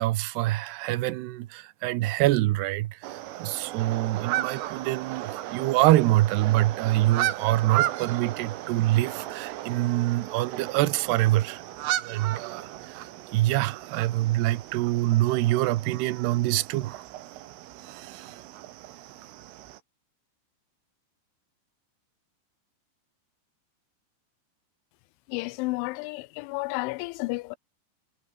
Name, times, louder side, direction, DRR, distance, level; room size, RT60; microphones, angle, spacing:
voice 1, 0.0-11.6 12.0-13.1 13.3-17.0 17.9-18.4, right 16 dB, 70° right, 2.8 m, -25 dB
sound 1, 3.0-19.8, right 14 dB, 85° right, 4.2 m, -35 dB
voice 2, 25.3-27.6, left 23 dB, 80° left, 3.0 m, -31 dB
omnidirectional pair, 5.6 m